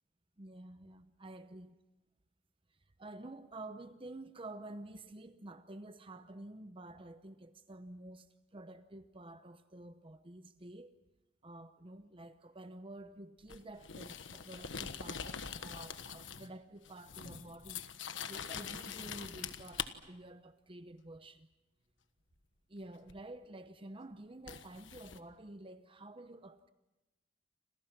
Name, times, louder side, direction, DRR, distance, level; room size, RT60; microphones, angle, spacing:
voice 1, 0.4-1.7 2.7-11.0 11.4-21.5 22.7-26.7, right 2 dB, 30° right, 0.8 m, -50 dB
sound 1, 13.5-16.6 16.8-19.9 23.1-23.2 24.5-25.2, left 7 dB, 75° left, 1.4 m, -43 dB
29.5 x 27.0 x 6.0 m
head